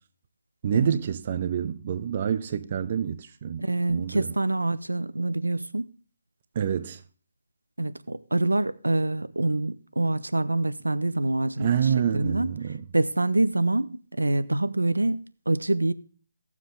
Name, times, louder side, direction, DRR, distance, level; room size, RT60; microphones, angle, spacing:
voice 1, 0.6-4.3 6.6-7.0 11.6-12.8, right 8 dB, 40° right, 0.6 m, -27 dB
voice 2, 3.6-5.9 7.8-12.5 12.9-15.9, right 2 dB, 90° right, 0.6 m, -26 dB
15.0 x 7.3 x 3.8 m
figure-of-eight pair, 145°, 0 cm